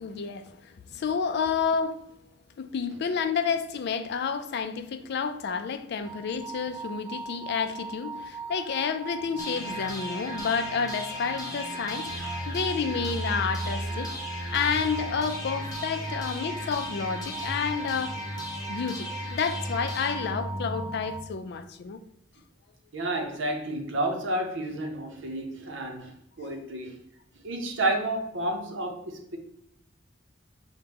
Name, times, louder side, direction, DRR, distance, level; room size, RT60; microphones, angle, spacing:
voice 1, 0.0-2.0 2.6-14.1 14.5-18.2 18.7-22.0, left 6 dB, 60° left, 0.3 m, -30 dB
sound 1, 6.0-21.2, right 3 dB, 5° right, 0.4 m, -40 dB
sound 2, 9.4-21.3, equal, 20° left, 1.0 m, -36 dB
voice 2, 22.9-27.0 27.4-29.4, right 1 dB, 70° right, 0.7 m, -31 dB
5.8 x 2.1 x 3.4 m
head